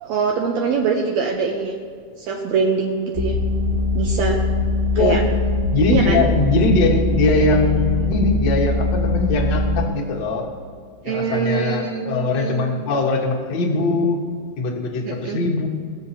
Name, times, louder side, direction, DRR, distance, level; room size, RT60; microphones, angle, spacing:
voice 1, 0.0-1.8 2.2-3.4 3.9-4.4 5.0-5.2 5.9-6.2 11.0-12.7 15.1-15.4, right 5 dB, 75° right, 1 dB, 1.7 m, -23 dB
sound 1, 3.1-9.9, left 2 dB, ahead, 1.5 m, -21 dB
voice 2, 5.7-10.5 11.0-14.2 14.6-15.7, left 3 dB, 50° left, 0 dB, 1.4 m, -21 dB
20.0 x 7.7 x 2.8 m, 2.1 s
omnidirectional pair, 3.8 m